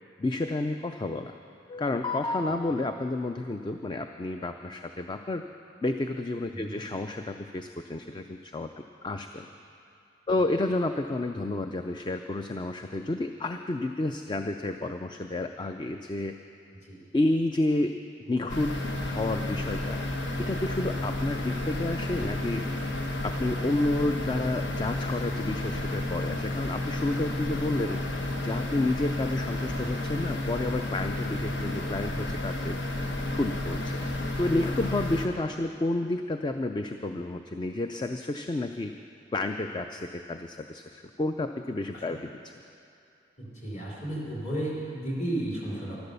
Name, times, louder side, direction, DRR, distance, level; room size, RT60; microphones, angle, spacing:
voice 1, 0.2-1.3 1.7-5.4 5.8-8.7 9.0-9.5 10.3-16.4 17.1-18.0 18.3-18.8 19.0-20.0 20.4-22.7 23.2-28.0 28.4-32.8 33.3-34.0 34.4-38.9 39.3-42.3, left 2 dB, 25° left, 7 dB, 0.4 m, -30 dB
sound 1, 18.5-35.3, left 1 dB, 75° left, 1.2 m, -31 dB
voice 2, 43.4-46.0, right 1 dB, 40° left, -5 dB, 3.7 m, -34 dB
12.5 x 12.5 x 6.8 m, 2.6 s
head